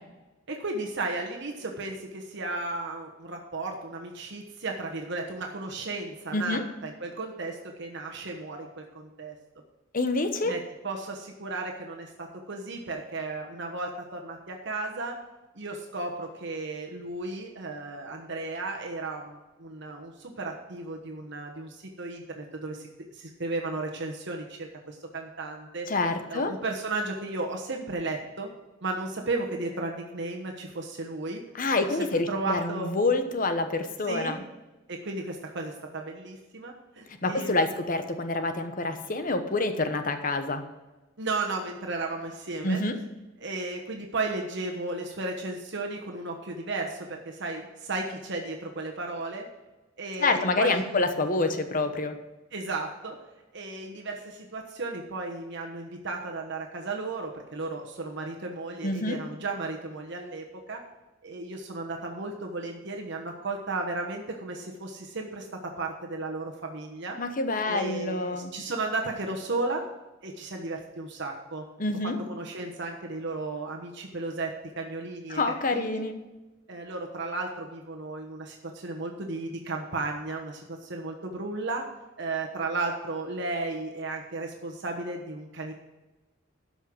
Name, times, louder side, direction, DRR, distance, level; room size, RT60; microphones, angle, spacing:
voice 1, 0.5-9.4 10.4-15.2 15.5-22.9 23.1-25.9 26.3-28.5 28.8-31.4 32.0-32.9 34.1-34.4 34.9-37.8 41.2-42.8 43.4-49.5 50.0-51.0 52.5-53.2 53.5-60.8 61.2-67.2 67.6-69.8 70.2-71.6 72.0-75.4 75.7-76.0 76.7-81.9 82.2-85.7, right 3 dB, 60° right, 1 dB, 1.2 m, -34 dB
voice 2, 6.3-6.6 9.9-10.5 25.9-26.5 31.6-34.4 37.2-40.6 42.6-43.0 50.2-52.2 58.8-59.2 67.2-68.5 71.8-72.2 75.3-76.2, left 2 dB, 45° left, 8 dB, 1.0 m, -27 dB
12.5 x 5.5 x 6.2 m, 1.1 s
head